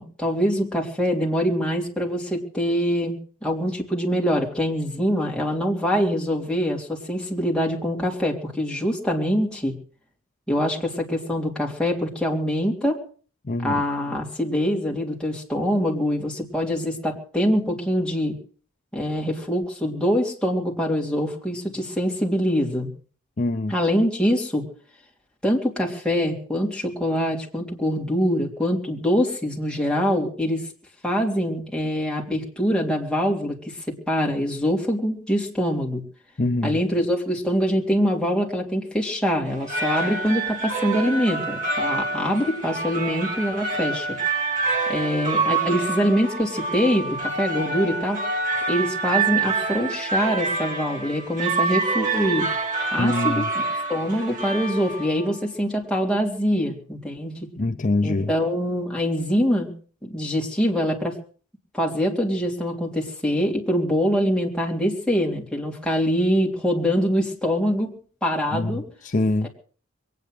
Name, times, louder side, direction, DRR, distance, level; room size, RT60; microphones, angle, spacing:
voice 1, 0.0-9.8 10.5-13.0 13.6-18.4 18.9-22.9 23.7-24.7 25.4-30.6 31.0-33.6 33.9-36.0 36.6-44.2 44.9-48.3 48.7-52.5 52.9-53.5 53.9-57.5 58.0-59.7 60.0-61.2 61.7-68.0 68.2-68.9, equal, 5° left, 3.4 m, -24 dB
voice 2, 13.4-13.8 23.4-23.8 36.4-36.8 53.0-53.5 57.6-58.3 68.5-69.5, left 2 dB, 40° left, 0.7 m, -24 dB
sound 1, 39.5-55.4, right 3 dB, 40° right, 2.9 m, -27 dB
22.5 x 9.4 x 6.5 m
head